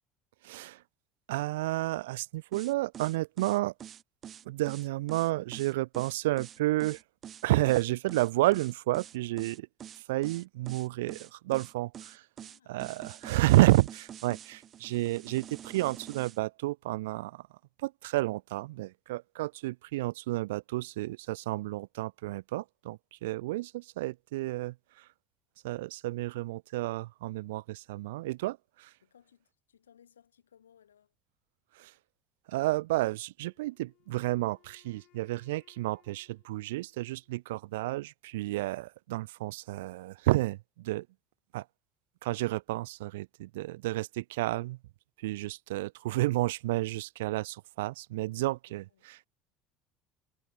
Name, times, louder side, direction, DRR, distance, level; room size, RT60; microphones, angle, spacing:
voice 1, 0.4-0.8 1.3-3.7 4.4-7.0 7.4-9.7 10.0-12.2 12.7-17.5 17.8-25.1 25.6-28.9 31.8-31.9 32.5-41.1 41.5-41.7 42.2-44.8 45.2-49.2, right 18 dB, 75° right, 0.7 m, -31 dB
sound 1, 2.5-16.4, right 9 dB, 45° right, 2.7 m, -46 dB
voice 2, 12.4-12.9 29.0-31.1 48.7-49.1, left 9 dB, 90° left, 5.1 m, -63 dB
Wind instrument woodwind instrument, 33.4-37.5, left 17 dB, 60° left, 6.0 m, -68 dB
hypercardioid pair, 70°, 0 cm